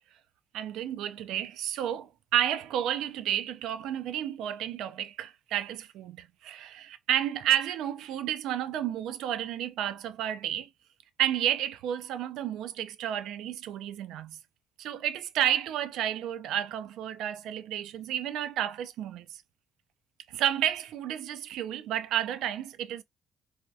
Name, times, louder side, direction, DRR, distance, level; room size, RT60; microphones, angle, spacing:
voice 1, 0.5-10.7 11.2-14.4 14.8-19.4 20.3-23.0, right 11 dB, 85° right, 0.3 m, -31 dB
3.3 x 2.3 x 2.6 m
cardioid pair, 90°, 0 cm